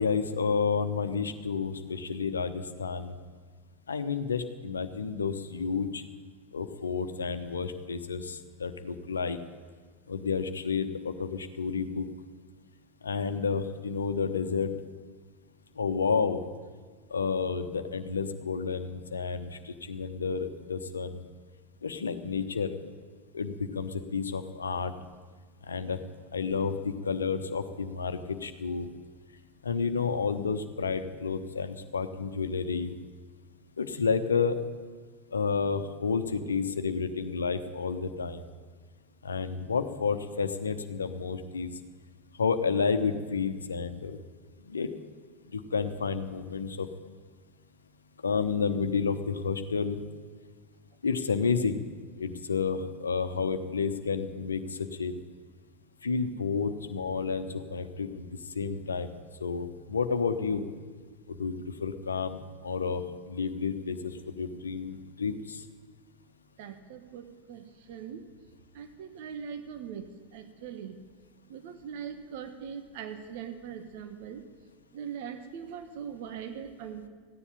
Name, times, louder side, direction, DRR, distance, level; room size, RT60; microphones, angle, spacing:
voice 1, 0.0-3.2 3.9-6.0 6.5-9.4 10.1-12.1 13.0-14.7 15.8-16.4 17.1-21.2 21.8-22.7 23.3-24.9 25.7-26.0 26.3-28.9 29.6-33.0 33.8-34.6 35.3-38.4 39.2-41.7 42.4-44.2 44.7-44.9 45.5-46.9 48.2-50.0 51.0-51.8 52.2-55.2 56.0-58.3 58.5-59.1 59.4-60.6 61.3-61.5 61.8-65.6, left 5 dB, 90° left, 9 dB, 1.0 m, -30 dB
voice 2, 66.6-68.3 68.7-71.0 71.5-74.5 74.9-77.1, right 7 dB, 65° right, 8 dB, 1.3 m, -41 dB
15.0 x 10.0 x 9.9 m, 1.5 s
hypercardioid pair, 85°, 0 cm